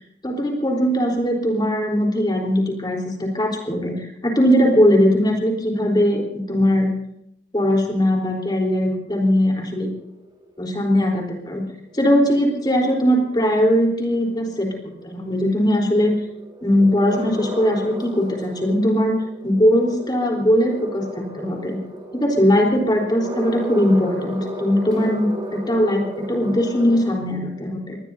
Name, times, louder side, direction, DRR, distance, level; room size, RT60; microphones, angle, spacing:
voice 1, 0.2-6.9 7.5-9.9 10.6-11.6 11.9-14.7 15.0-16.2 16.6-19.2 19.4-21.8 22.1-28.0, equal, 25° left, 0 dB, 3.8 m, -20 dB
sound 1, 9.8-27.2, equal, 25° right, 3.7 m, -35 dB
25.0 x 20.0 x 2.7 m, 0.76 s
head